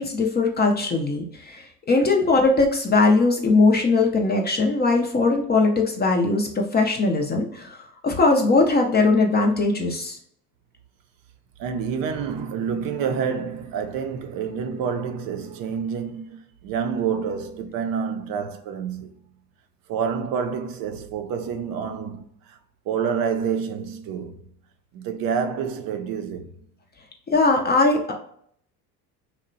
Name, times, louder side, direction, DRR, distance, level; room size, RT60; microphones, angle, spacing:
voice 1, 0.0-7.8 8.0-10.2 27.3-28.1, left 3 dB, 25° left, 0.4 m, -20 dB
voice 2, 11.6-19.1 19.9-22.6 22.9-24.4 24.9-26.5, right 6 dB, 50° right, 0.4 m, -28 dB
2.8 x 2.0 x 2.5 m
hypercardioid pair, 80°, 47 cm